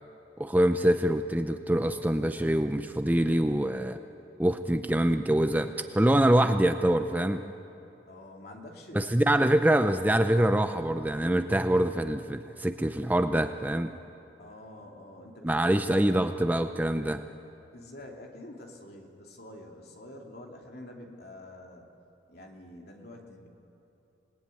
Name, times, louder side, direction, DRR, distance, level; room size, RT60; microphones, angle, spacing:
voice 1, 0.4-4.0 4.4-7.4 8.9-13.9 15.4-17.2, right 1 dB, 10° right, 7 dB, 0.6 m, -25 dB
voice 2, 8.1-9.2 14.4-16.2 17.7-21.9 22.3-23.5, left 1 dB, 55° left, 1 dB, 2.9 m, -47 dB
27.0 x 19.0 x 9.4 m, 2.9 s
head